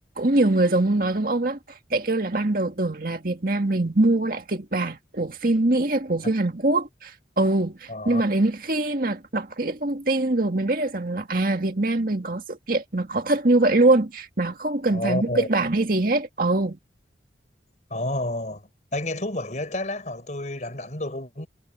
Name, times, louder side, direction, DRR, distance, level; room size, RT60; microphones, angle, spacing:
voice 1, 0.2-1.6 1.9-16.8, right 2 dB, 55° right, 2.0 m, -23 dB
voice 2, 7.9-8.2 14.9-15.5 17.9-21.5, left 1 dB, 45° left, 4.7 m, -30 dB
head